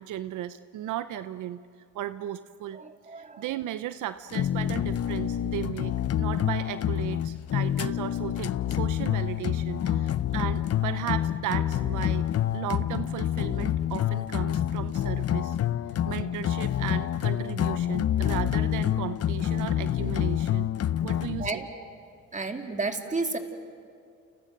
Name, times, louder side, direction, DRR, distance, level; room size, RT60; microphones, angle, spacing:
voice 1, 0.0-1.6 1.9-2.8 3.1-12.3 12.5-15.6 16.0-20.7 21.0-21.6, right 12 dB, 80° right, 12 dB, 0.8 m, -35 dB
voice 2, 2.7-3.5 9.8-10.0 21.4-21.7 22.3-23.4, right 3 dB, 25° right, 4 dB, 2.9 m, -32 dB
sound 1, 4.3-21.5, left 11 dB, 55° left, 0.8 m, -27 dB
30.0 x 29.0 x 6.7 m, 2.4 s
cardioid pair, 90°, 30 cm